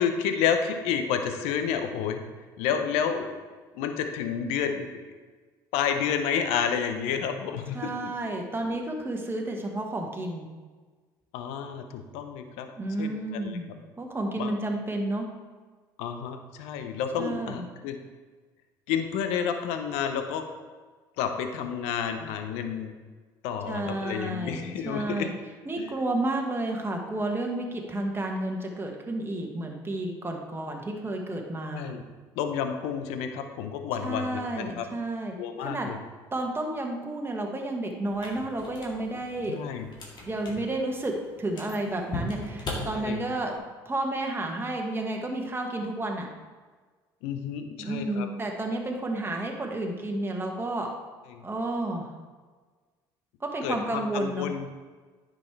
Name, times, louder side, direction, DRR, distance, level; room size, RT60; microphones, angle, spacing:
voice 1, 0.0-2.2 2.6-3.3 3.7-5.0 5.7-8.1 11.3-12.7 13.0-13.7 14.4-14.5 16.0-18.0 18.9-20.5 21.2-22.9 23.4-25.3 25.8-25.9 31.7-32.0 32.4-34.9 35.4-36.0 39.5-39.9 42.8-43.2 47.2-48.3 51.3-51.4 53.6-54.7, left 7 dB, 75° left, 7 dB, 0.8 m, -30 dB
voice 2, 7.7-10.5 12.8-13.7 14.0-15.3 17.2-17.6 23.7-25.3 25.6-31.9 34.0-35.9 36.3-39.6 40.2-43.5 43.8-46.3 47.8-50.9 51.4-52.1 53.4-54.5, right 1 dB, 20° right, 1 dB, 1.6 m, -31 dB
sound 1, 38.1-43.6, left 1 dB, 45° left, 2.1 m, -40 dB
9.7 x 6.3 x 3.3 m, 1.4 s
hypercardioid pair, 65°, 11 cm